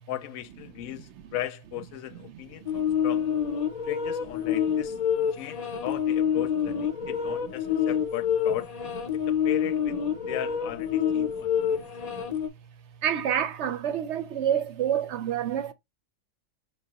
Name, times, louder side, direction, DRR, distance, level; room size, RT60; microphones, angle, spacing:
voice 1, 0.1-3.3 3.8-5.0 5.3-8.7 9.3-10.0 10.3-11.8, left 14 dB, 85° left, 1.0 m, -37 dB
sound 1, 2.7-12.5, left 8 dB, 50° left, 0.5 m, -27 dB
voice 2, 4.7-5.0 5.7-5.8 7.0-7.1 11.1-12.2 13.0-15.7, right 9 dB, 65° right, 0.8 m, -30 dB
5.6 x 3.1 x 2.8 m
omnidirectional pair, 1.4 m